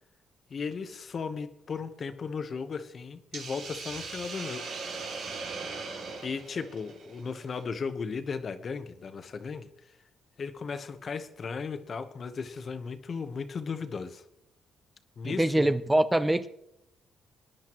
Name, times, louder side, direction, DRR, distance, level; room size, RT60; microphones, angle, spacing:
voice 1, 0.5-4.7 6.2-9.7 10.4-14.2 15.2-15.7, left 5 dB, 45° left, 9 dB, 1.0 m, -36 dB
Hiss, 3.3-7.6, right 4 dB, 80° right, 2.5 m, -39 dB
voice 2, 15.2-16.5, right 1 dB, 10° right, 11 dB, 0.6 m, -24 dB
21.0 x 10.5 x 3.0 m, 0.80 s
cardioid pair, 90°, 0 cm